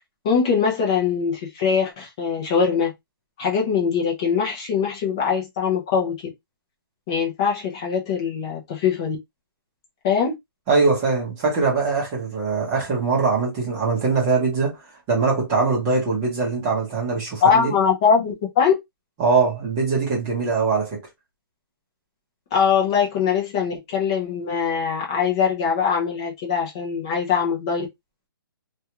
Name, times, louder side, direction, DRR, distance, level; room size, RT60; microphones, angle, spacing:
voice 1, 0.2-2.9 3.4-6.2 7.1-9.2 10.0-10.3 17.4-18.7 22.5-27.8, left 6 dB, 10° left, 0.4 m, -22 dB
voice 2, 10.7-14.8 15.1-17.7 19.2-21.0, right 4 dB, 15° right, 0.8 m, -22 dB
2.4 x 2.2 x 2.8 m
hypercardioid pair, 175°, 12 cm